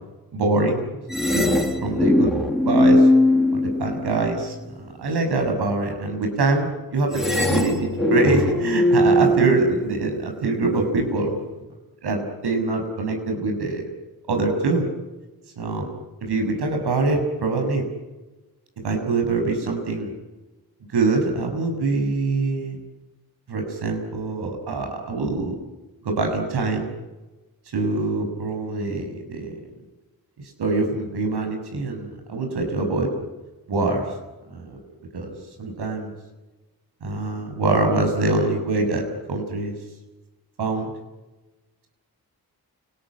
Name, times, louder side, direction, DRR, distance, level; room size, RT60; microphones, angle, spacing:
voice 1, 0.3-0.9 1.3-1.4 1.8-3.1 3.5-11.4 12.0-13.8 14.3-14.9 15.6-15.9 16.2-17.9 18.8-20.1 20.9-22.8 23.5-25.6 26.0-26.9 27.7-29.5 30.6-33.1 33.7-34.1 34.5-34.8 35.1-35.3 35.6-36.1 37.0-39.7 40.6-40.9, right 3 dB, 90° right, 4 dB, 6.9 m, -24 dB
sound 1, 1.1-4.3 7.1-10.3, left 1 dB, ahead, 5.4 m, -20 dB
29.5 x 20.5 x 9.7 m, 1.1 s
cardioid pair, 70°, 38 cm